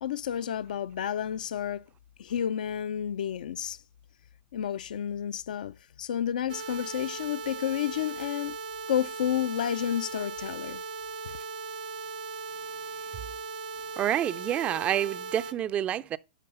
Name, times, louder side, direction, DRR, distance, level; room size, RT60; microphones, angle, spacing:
voice 1, 0.0-1.8 2.2-3.8 4.5-8.6 8.9-10.8, left 10 dB, 70° left, 0.4 m, -31 dB
sound 1, 6.5-15.5, right 4 dB, 75° right, 1.0 m, -38 dB
voice 2, 14.0-16.2, right 11 dB, 25° right, 0.4 m, -28 dB
11.0 x 3.9 x 5.3 m
hypercardioid pair, 115°, 5 cm